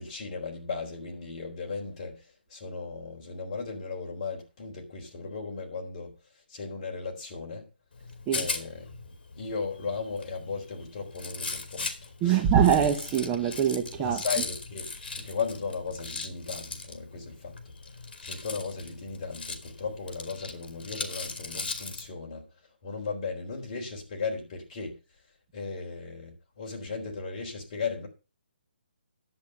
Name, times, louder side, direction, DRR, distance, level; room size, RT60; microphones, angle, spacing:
voice 1, 0.0-6.1 6.5-7.7 8.3-8.9 9.4-12.5 14.0-17.6 18.2-22.5 22.8-25.0 25.5-28.1, left 4 dB, 30° left, 3.7 m, -36 dB
Rattle, 7.9-22.1, left 4 dB, 60° left, 2.5 m, -39 dB
voice 2, 12.2-14.2, right 8 dB, 15° right, 0.7 m, -23 dB
10.5 x 8.2 x 5.7 m
hypercardioid pair, 170°, 6 cm